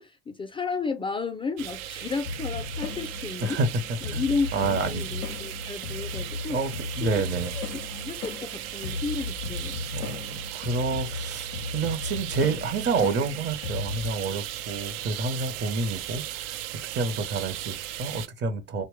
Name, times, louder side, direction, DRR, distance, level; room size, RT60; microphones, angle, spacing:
voice 1, 0.0-3.6 4.0-6.6 7.0-7.6 7.9-9.8 18.8-18.9, left 4 dB, 15° left, 0.4 m, -33 dB
sound 1, 1.6-18.3, right 12 dB, 60° right, 0.4 m, -37 dB
sound 2, 2.2-14.1, left 4 dB, 80° left, 0.5 m, -36 dB
voice 2, 3.4-4.2 4.5-5.0 6.5-7.5 9.9-16.6 16.9-18.8, right 4 dB, 35° right, 0.8 m, -29 dB
3.0 x 2.2 x 3.0 m
hypercardioid pair, 80°, 30 cm